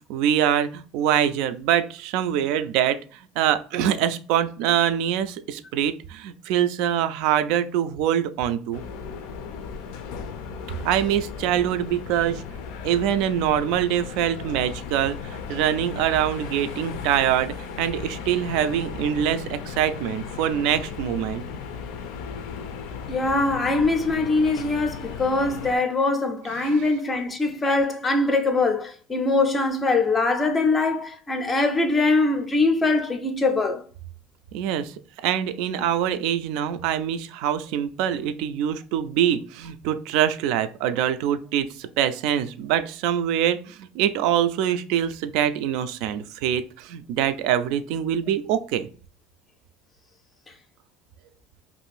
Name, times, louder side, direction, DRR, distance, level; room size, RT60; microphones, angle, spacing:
voice 1, 0.1-8.8 10.8-12.4 12.8-21.4 26.6-26.8 34.5-34.9 35.2-48.9, right 10 dB, 70° right, 0.3 m, -24 dB
sound 1, 8.7-25.8, left 6 dB, 75° left, 0.4 m, -36 dB
voice 2, 23.1-33.8, left 3 dB, 20° left, 0.5 m, -22 dB
2.5 x 2.5 x 3.2 m
supercardioid pair, 125°, 0 cm